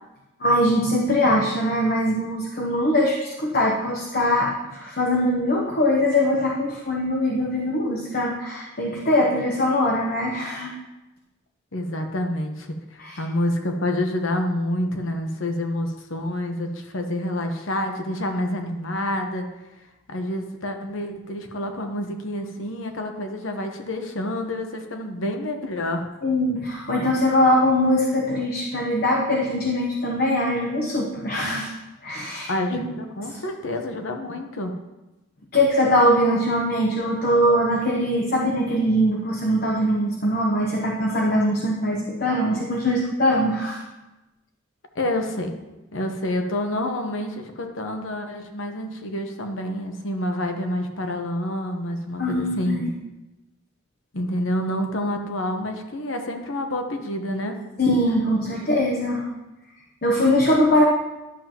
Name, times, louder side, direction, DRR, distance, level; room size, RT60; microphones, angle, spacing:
voice 1, 0.4-10.7 13.0-13.2 26.2-31.7 32.0-32.8 35.5-43.8 52.2-52.9 57.8-59.3 60.0-60.9, left 1 dB, 45° left, -1 dB, 0.9 m, -22 dB
voice 2, 11.7-19.5 20.1-26.1 32.5-34.7 44.9-45.5 45.9-52.9 54.1-57.6 58.5-58.6, left 1 dB, 70° left, 5 dB, 1.0 m, -28 dB
11.0 x 7.1 x 2.9 m, 1.0 s
head